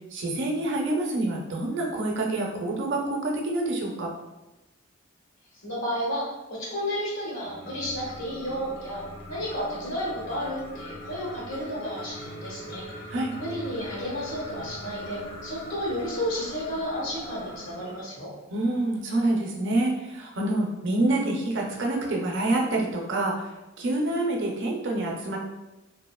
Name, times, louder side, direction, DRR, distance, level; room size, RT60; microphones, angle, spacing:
voice 1, 0.1-4.1 13.1-13.3 18.5-23.5 23.8-25.4, right 2 dB, 60° right, -1 dB, 0.6 m, -27 dB
voice 2, 5.6-9.0 9.3-18.3, equal, 85° left, -5 dB, 1.2 m, -32 dB
sound 1, 7.4-18.0, equal, 65° left, 0.8 m, -41 dB
2.7 x 2.7 x 2.2 m, 1.0 s
head